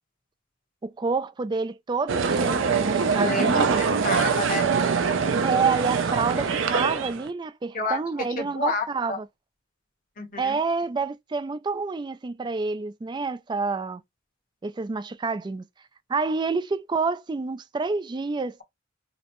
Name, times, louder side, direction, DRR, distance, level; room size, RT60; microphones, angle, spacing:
voice 1, 0.8-3.8 5.4-9.2 10.4-14.0 14.6-15.6 16.1-18.6, right 4 dB, 25° right, 0.3 m, -28 dB
sound 1, 2.1-7.3, right 5 dB, 75° right, 0.5 m, -24 dB
voice 2, 3.2-4.8 7.7-8.0 8.3-9.2 10.2-10.6, left 3 dB, 45° left, 1.1 m, -30 dB
5.0 x 2.0 x 3.0 m
head